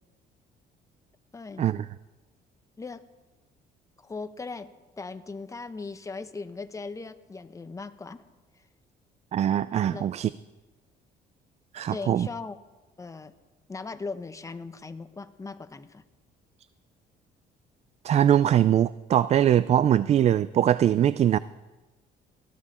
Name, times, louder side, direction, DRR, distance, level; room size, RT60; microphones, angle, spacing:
voice 1, 1.3-1.7 2.8-3.0 4.0-4.7 5.0-8.2 8.6-8.7 9.9-10.1 11.9-12.6 13.0-13.3 13.7-16.0, left 4 dB, 20° left, 10 dB, 0.9 m, -38 dB
voice 2, 9.3-10.3 11.7-12.3 18.0-21.4, right 10 dB, 40° right, 17 dB, 0.4 m, -22 dB
18.5 x 14.0 x 4.3 m, 1.2 s
cardioid pair, 110°, 17 cm